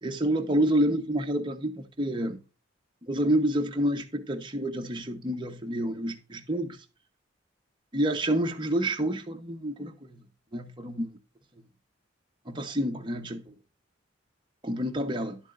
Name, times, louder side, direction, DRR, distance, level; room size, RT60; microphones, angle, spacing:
voice 1, 0.0-2.4 3.1-6.8 7.9-10.2 10.5-11.1 12.5-13.5 14.6-15.4, right 1 dB, 25° right, 0.9 m, -28 dB
11.0 x 7.2 x 2.5 m
head